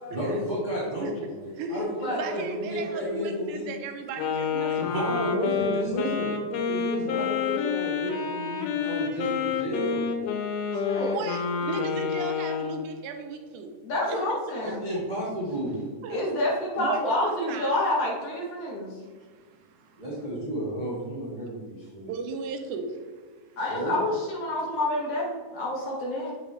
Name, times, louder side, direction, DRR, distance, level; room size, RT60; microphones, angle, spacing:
voice 1, 0.0-3.7 4.5-6.3 6.7-10.4 14.6-15.8 20.0-22.1 23.7-24.0, equal, 30° right, -8 dB, 0.8 m, -32 dB
voice 2, 1.6-5.2 11.1-13.7 14.0-14.4 16.0-16.4 16.8-17.7 19.0-20.0 22.1-23.1, right 4 dB, 80° right, 5 dB, 2.2 m, -35 dB
Wind instrument woodwind instrument, 4.2-12.8, left 6 dB, 90° left, 2.3 m, -29 dB
voice 3, 10.8-11.2 13.8-14.9 16.1-19.0 23.6-26.3, left 1 dB, 65° left, -3 dB, 1.7 m, -28 dB
7.3 x 4.9 x 3.2 m, 1.5 s
omnidirectional pair, 3.6 m